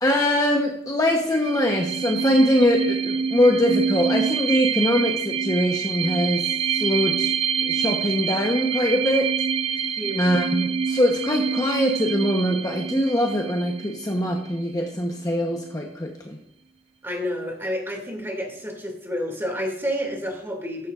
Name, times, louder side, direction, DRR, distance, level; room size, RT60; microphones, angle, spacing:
voice 1, 0.0-6.4 6.7-7.3 7.6-9.3 10.2-16.4, equal, 20° left, 1 dB, 1.0 m, -22 dB
sound 1, 1.2-14.6, right 6 dB, 30° right, 0.5 m, -26 dB
voice 2, 10.0-10.4 17.0-20.9, equal, 15° right, 1 dB, 2.4 m, -29 dB
14.5 x 11.5 x 2.5 m, 0.71 s
head